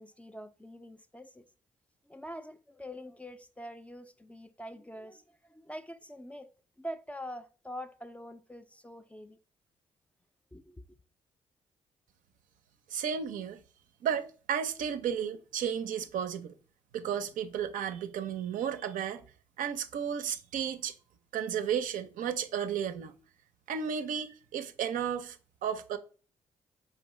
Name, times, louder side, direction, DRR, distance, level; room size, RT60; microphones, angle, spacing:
voice 1, 0.0-1.4 2.1-5.2 5.5-6.5 6.8-9.4 10.5-10.8, equal, 10° left, 0.4 m, -44 dB
voice 2, 12.9-13.6 14.0-16.5 16.9-19.2 19.6-20.9 21.3-23.1 23.7-25.4 25.6-26.0, right 8 dB, 65° right, 0.5 m, -33 dB
3.7 x 3.3 x 3.0 m
hypercardioid pair, 45°, 15 cm